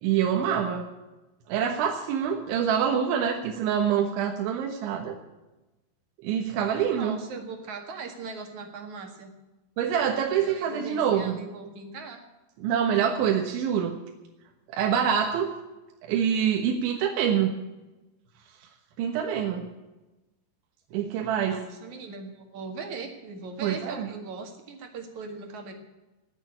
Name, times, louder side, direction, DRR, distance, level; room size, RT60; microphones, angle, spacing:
voice 1, 0.0-0.8 1.5-5.2 6.2-7.2 9.8-11.3 12.6-14.0 14.7-15.5 16.1-17.6 19.0-19.7 20.9-21.6 23.6-24.1, right 8 dB, 90° right, 2 dB, 3.7 m, -25 dB
voice 2, 7.0-9.3 10.4-12.2 21.5-25.7, right 4 dB, 50° right, 4 dB, 2.7 m, -39 dB
19.0 x 7.2 x 9.8 m, 1.1 s
omnidirectional pair, 5.2 m